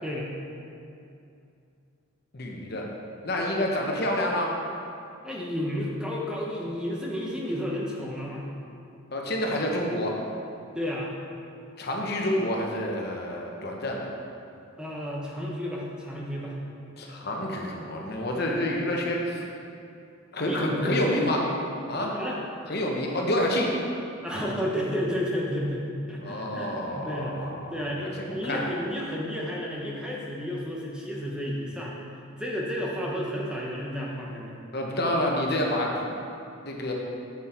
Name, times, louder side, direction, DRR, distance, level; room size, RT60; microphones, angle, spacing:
voice 1, 2.3-2.9 3.2-4.6 9.1-10.2 11.8-14.1 17.0-19.4 20.3-21.4 21.9-22.1 22.7-23.7 26.2-27.5 28.0-28.6 34.7-36.2 36.6-36.9, left 1 dB, 50° left, -1 dB, 1.0 m, -28 dB
voice 2, 5.2-8.5 10.7-11.1 14.8-16.7 20.4-21.4 22.0-22.4 24.2-31.9 32.4-34.6, equal, 5° right, -3 dB, 0.9 m, -32 dB
7.7 x 7.6 x 4.4 m, 2.6 s
head